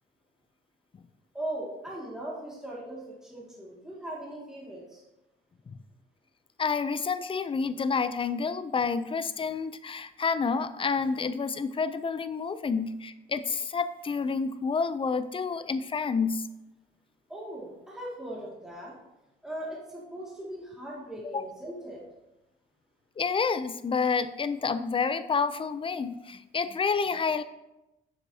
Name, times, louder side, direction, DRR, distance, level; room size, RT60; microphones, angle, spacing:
voice 1, 1.3-5.0 17.3-18.9 19.4-22.0, right 1 dB, 5° right, -5 dB, 2.1 m, -39 dB
voice 2, 6.6-16.5 21.2-21.4 23.2-27.4, left 5 dB, 25° left, 13 dB, 0.4 m, -29 dB
7.1 x 6.8 x 2.8 m, 0.95 s
cardioid pair, 90°, 20 cm